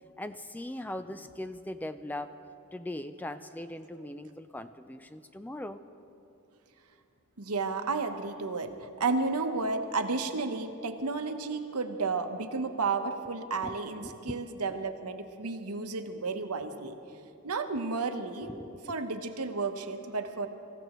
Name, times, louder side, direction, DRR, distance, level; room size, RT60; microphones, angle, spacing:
voice 1, 0.2-2.4 2.7-5.8 13.6-13.7 14.0-14.4 18.4-18.9, left 1 dB, 10° left, 10 dB, 0.3 m, -40 dB
voice 2, 7.4-16.9 17.4-20.5, right 4 dB, 85° right, 7 dB, 1.0 m, -32 dB
25.5 x 15.5 x 3.0 m, 2.8 s
head